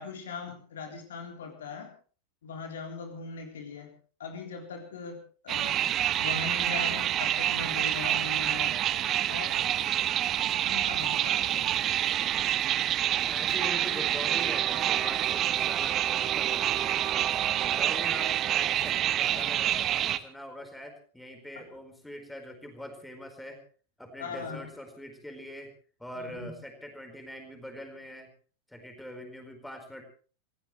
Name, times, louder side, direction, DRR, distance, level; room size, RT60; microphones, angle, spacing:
voice 1, 0.0-1.9 2.4-3.9 4.2-5.2 5.4-5.8 6.2-8.8 9.3-9.6 10.6-11.7 21.6-21.7 24.2-24.7 26.2-26.5, left 5 dB, 60° left, 3 dB, 3.7 m, -39 dB
sound 1, 5.5-20.2, right 11 dB, 30° right, 1.1 m, -27 dB
voice 2, 13.0-17.0 17.5-23.6 24.0-25.7 26.0-28.3 28.7-30.0, equal, 5° left, 4 dB, 4.6 m, -43 dB
27.0 x 16.0 x 3.3 m, 0.39 s
figure-of-eight pair, 90°, 0 cm